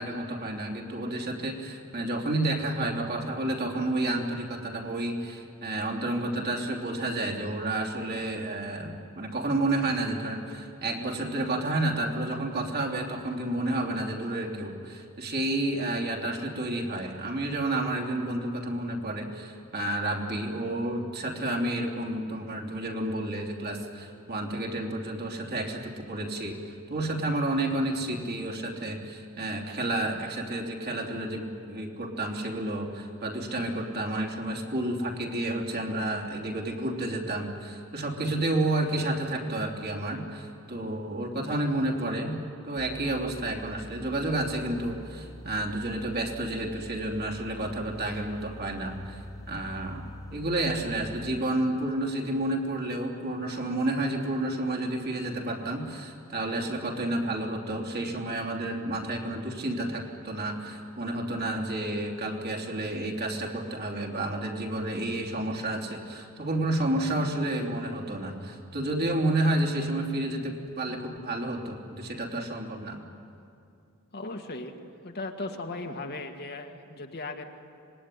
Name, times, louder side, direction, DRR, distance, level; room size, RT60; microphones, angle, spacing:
voice 1, 0.0-73.0, right 1 dB, 50° right, 0 dB, 3.2 m, -30 dB
sound 1, 42.8-51.4, left 1 dB, 15° left, 0.6 m, -46 dB
voice 2, 74.1-74.7 75.0-77.4, left 2 dB, 50° left, 4 dB, 1.9 m, -37 dB
25.5 x 20.5 x 10.0 m, 2.6 s
head